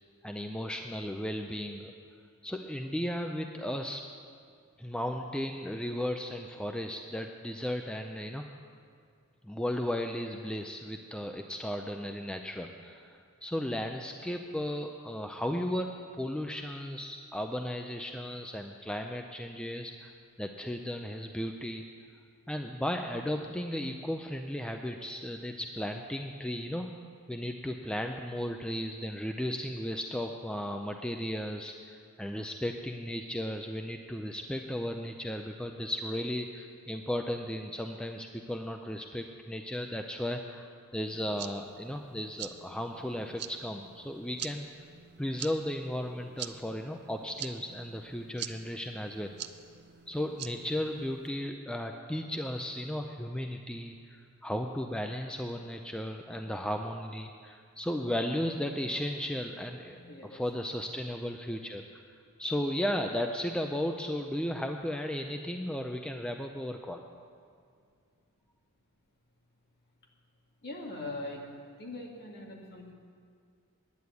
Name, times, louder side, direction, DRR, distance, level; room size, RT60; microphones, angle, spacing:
voice 1, 0.2-1.9 2.4-4.0 4.8-8.4 9.4-15.9 16.2-21.8 22.5-26.9 27.3-44.7 45.2-49.3 50.1-61.8 62.4-67.0, left 1 dB, 5° left, 4 dB, 0.4 m, -35 dB
sound 1, 41.1-51.3, right 10 dB, 50° right, 0.5 m, -46 dB
voice 2, 59.9-60.7 70.6-71.4 71.8-72.9, left 2 dB, 50° left, -1 dB, 2.1 m, -42 dB
10.5 x 9.4 x 8.2 m, 2.2 s
head